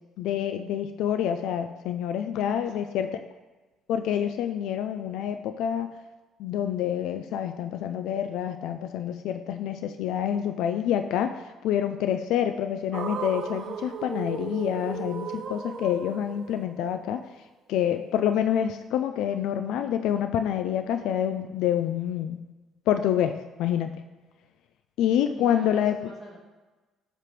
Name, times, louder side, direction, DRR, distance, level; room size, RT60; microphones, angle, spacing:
voice 1, 0.2-3.2 3.9-5.9 6.4-17.2 17.7-22.4 22.9-24.0 25.0-26.0, left 10 dB, 70° left, 8 dB, 0.3 m, -27 dB
voice 2, 2.3-2.7 25.3-26.4, left 1 dB, 10° left, -7 dB, 2.2 m, -44 dB
sound 1, 12.9-17.2, right 6 dB, 35° right, 0.4 m, -36 dB
7.5 x 3.4 x 6.0 m, 1.2 s
cardioid pair, 160°, 0 cm